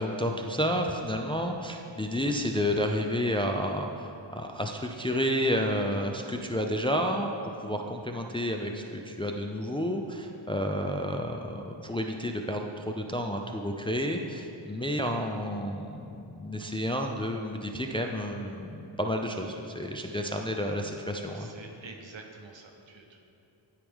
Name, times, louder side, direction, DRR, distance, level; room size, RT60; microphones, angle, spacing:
voice 1, 0.0-7.3 7.6-21.5, equal, 10° left, 3 dB, 0.4 m, -30 dB
voice 2, 21.3-23.2, right 3 dB, 65° right, 3 dB, 1.0 m, -47 dB
12.0 x 4.8 x 3.6 m, 2.7 s
wide cardioid pair, 65°, 48 cm